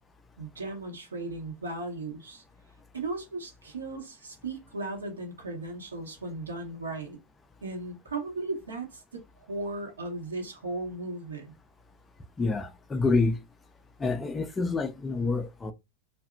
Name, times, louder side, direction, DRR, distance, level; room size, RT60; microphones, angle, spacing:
voice 1, 0.4-2.4 2.9-7.2 7.6-11.5, right 2 dB, 70° right, 0.9 m, -36 dB
voice 2, 12.4-13.4 14.0-15.7, left 3 dB, 15° left, 0.4 m, -27 dB
2.7 x 2.1 x 2.4 m
figure-of-eight pair, 90°, 0 cm